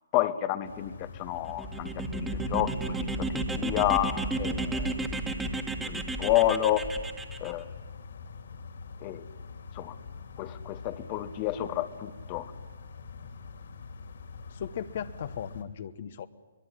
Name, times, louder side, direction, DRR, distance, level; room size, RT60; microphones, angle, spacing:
voice 1, 0.1-5.0 5.9-6.9 7.4-7.7 9.0-9.2 9.7-9.9 10.4-12.5, left 14 dB, 30° left, 10 dB, 1.1 m, -30 dB
sound 1, 0.6-15.6, left 5 dB, 70° left, 3.6 m, -45 dB
sound 2, 1.4-7.5, right 2 dB, 10° right, 1.9 m, -32 dB
voice 2, 14.5-16.3, left 8 dB, 50° left, 11 dB, 1.1 m, -37 dB
22.5 x 22.0 x 10.0 m, 1.3 s
hypercardioid pair, 150°, 0 cm